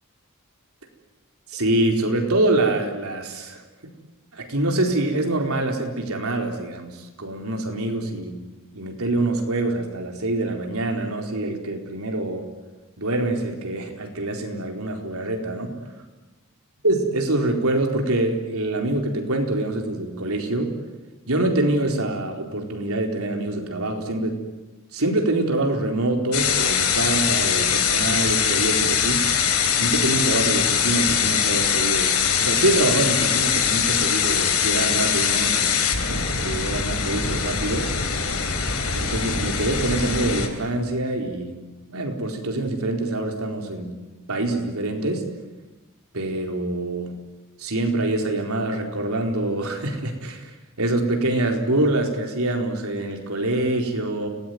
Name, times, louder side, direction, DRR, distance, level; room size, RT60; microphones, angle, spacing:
voice 1, 1.5-3.6 4.3-8.4 8.7-12.5 13.0-15.7 16.8-20.8 21.3-24.4 24.9-29.3 29.8-37.9 38.9-41.6 41.9-43.9 44.3-45.3 46.1-47.1 47.6-50.5 50.8-54.3, right 2 dB, 70° right, 3 dB, 4.3 m, -25 dB
sound 1, 26.3-40.5, left 7 dB, 85° left, 3.8 m, -22 dB
30.0 x 19.0 x 9.5 m, 1.1 s
head